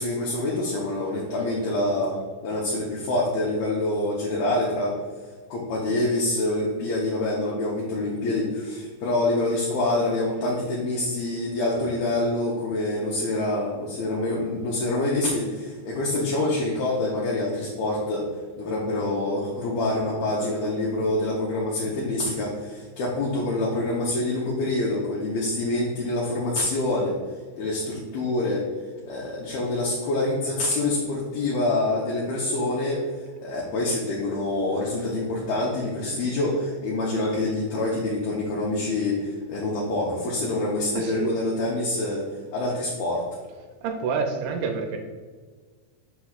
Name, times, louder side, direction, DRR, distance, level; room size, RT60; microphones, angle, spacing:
voice 1, 0.0-2.2 2.4-5.0 5.5-18.3 18.6-27.2 27.6-28.6 29.1-33.1 33.4-43.3, left 2 dB, 80° left, -4 dB, 2.2 m, -26 dB
voice 2, 40.9-41.4 43.8-45.0, right 5 dB, 80° right, 3 dB, 2.8 m, -28 dB
6.6 x 6.0 x 2.4 m, 1.5 s
omnidirectional pair, 5.3 m